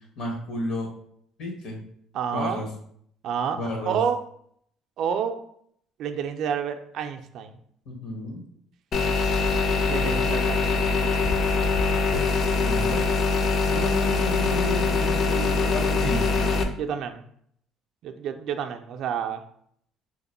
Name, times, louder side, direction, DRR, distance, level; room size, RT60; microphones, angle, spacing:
voice 1, 0.2-0.9 1.4-1.8 2.3-2.7 3.5-4.0 7.8-8.4 12.6-13.0 13.7-16.6, left 1 dB, 70° left, 0 dB, 1.2 m, -32 dB
voice 2, 2.1-2.6 3.2-3.6 3.9-4.2 5.0-5.4 6.0-7.6 9.9-10.9 16.8-17.2 18.0-19.4, right 7 dB, 65° right, 6 dB, 0.3 m, -29 dB
sound 1, 8.9-16.6, left 4 dB, 50° left, 0.4 m, -23 dB
2.9 x 2.1 x 4.1 m, 0.66 s
cardioid pair, 100°, 0 cm